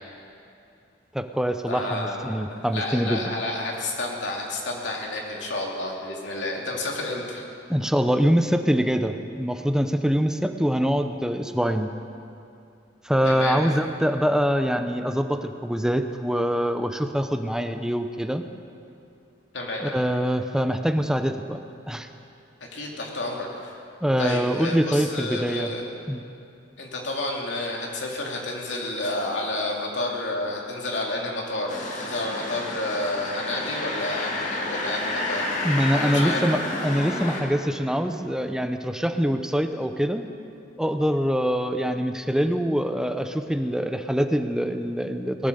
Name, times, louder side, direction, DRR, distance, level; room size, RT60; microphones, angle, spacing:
voice 1, 1.1-3.2 7.7-11.9 13.0-18.4 19.8-21.6 21.9-22.1 24.0-25.7 26.1-26.2 35.6-40.2 40.8-45.5, equal, 5° right, 7 dB, 0.6 m, -24 dB
voice 2, 1.7-2.5 2.7-7.5 13.2-13.6 19.5-20.0 22.7-23.7 24.2-25.9 26.8-35.6 35.9-36.5, left 2 dB, 75° left, -1 dB, 2.7 m, -30 dB
sound 1, 31.7-37.4, left 2 dB, 40° left, 2.2 m, -30 dB
18.5 x 10.0 x 6.9 m, 2.6 s
head